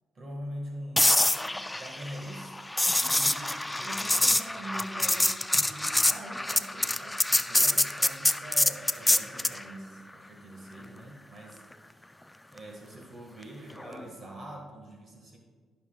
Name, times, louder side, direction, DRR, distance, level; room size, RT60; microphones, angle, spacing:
voice 1, 0.1-2.6 3.0-11.6 12.5-15.4, right 1 dB, 40° right, 1 dB, 1.6 m, -43 dB
sound 1, 1.0-9.6 13.8-14.0, left 1 dB, 10° left, 0.3 m, -26 dB
17.0 x 5.9 x 2.3 m, 1.5 s
cardioid pair, 90°, 0 cm